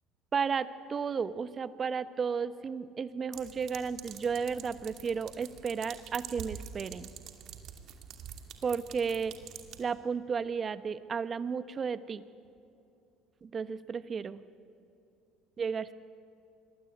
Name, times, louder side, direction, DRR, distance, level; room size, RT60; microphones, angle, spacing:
voice 1, 0.3-7.1 8.6-9.3 9.8-12.2 13.4-14.4 15.6-15.9, right 6 dB, 35° right, 13 dB, 1.1 m, -33 dB
sound 1, 3.3-9.8, right 9 dB, 60° right, 2.6 m, -46 dB
25.0 x 21.5 x 9.2 m, 2.7 s
hypercardioid pair, 75°, 0 cm